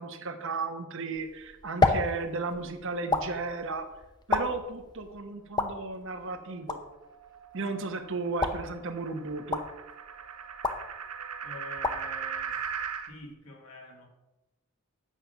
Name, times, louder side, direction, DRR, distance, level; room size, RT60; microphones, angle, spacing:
voice 1, 0.0-3.9 4.3-6.8 7.5-9.6, right 3 dB, 60° right, 6 dB, 1.0 m, -34 dB
sound 1, 1.1-13.3, left 3 dB, 20° left, 0.7 m, -34 dB
sound 2, 6.4-13.1, right 7 dB, 85° right, 1.0 m, -39 dB
voice 2, 11.4-12.6 13.1-14.1, left 2 dB, 75° left, 1 dB, 2.3 m, -46 dB
9.2 x 7.5 x 5.6 m, 1.0 s
head